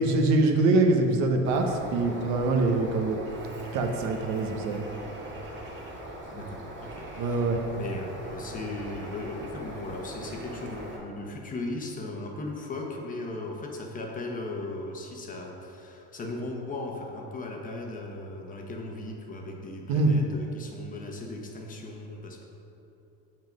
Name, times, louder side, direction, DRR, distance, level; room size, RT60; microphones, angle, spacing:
voice 1, 0.0-3.2 3.7-4.8 7.2-7.6 19.9-20.1, right 3 dB, 60° right, 3 dB, 1.0 m, -24 dB
Bird, 1.5-11.0, right 1 dB, 35° right, 1.8 m, -41 dB
voice 2, 6.3-7.4 7.8-22.4, left 2 dB, 25° left, 1 dB, 1.0 m, -37 dB
7.5 x 5.9 x 5.3 m, 2.9 s
cardioid pair, 130°, 32 cm